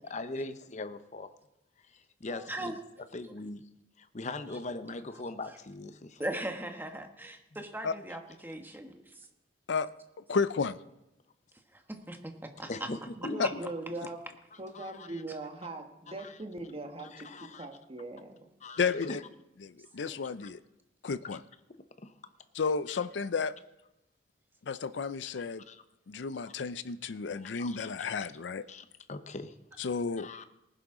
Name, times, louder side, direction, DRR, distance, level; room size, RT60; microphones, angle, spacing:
voice 1, 0.1-1.3 1.9-2.8 3.1-3.6 4.0-6.2 12.7-13.6 14.7-15.2 16.2-16.3 17.1-17.7 18.6-19.2 20.0-20.1 22.0-22.1 22.9-23.0 25.7-25.8 27.4-28.1 28.7-29.6 30.2-30.5, left 2 dB, 40° left, 10 dB, 0.8 m, -41 dB
voice 2, 2.3-2.7 6.2-9.3 11.7-12.9 13.4-13.5 20.1-20.2, right 1 dB, 10° right, 4 dB, 1.2 m, -39 dB
voice 3, 10.3-10.8 13.4-13.5 18.8-19.2 19.6-20.6 21.0-21.4 22.5-23.5 24.7-25.6 26.1-28.6 29.8-30.3, left 5 dB, 75° left, 14 dB, 0.5 m, -32 dB
voice 4, 13.2-14.2 14.6-18.5, right 2 dB, 35° right, 4 dB, 1.4 m, -41 dB
19.0 x 11.0 x 3.7 m, 0.89 s
head